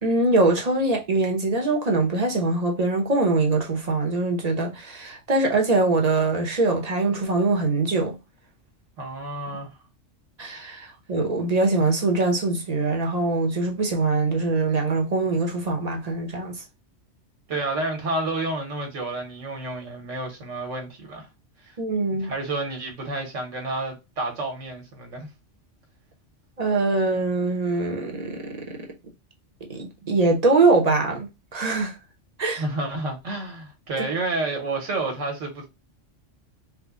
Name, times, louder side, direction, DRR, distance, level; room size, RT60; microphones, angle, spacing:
voice 1, 0.0-8.2 10.4-16.6 21.8-22.3 26.6-28.8 29.7-31.9 32.4-32.6 34.0-34.1, right 3 dB, 40° right, 0.7 m, -23 dB
voice 2, 9.0-9.7 17.5-21.3 21.6-21.8 22.2-25.3 32.6-35.7, right 2 dB, 80° right, 1.4 m, -30 dB
3.5 x 2.1 x 3.6 m
omnidirectional pair, 1.3 m